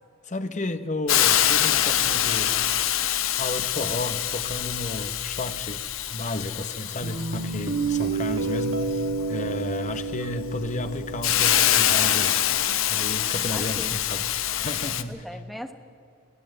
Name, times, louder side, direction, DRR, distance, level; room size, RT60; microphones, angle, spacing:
voice 1, 0.2-2.5 3.4-12.4 12.9-14.3 14.6-15.2, left 2 dB, 35° left, 1.0 m, -32 dB
Hiss, 1.1-15.0, left 11 dB, 80° left, 0.9 m, -25 dB
Guitar, 7.0-12.1, right 3 dB, 90° right, 1.9 m, -30 dB
voice 2, 12.6-13.0 13.5-14.0 15.1-15.7, equal, ahead, 1.1 m, -39 dB
22.5 x 17.0 x 7.8 m
head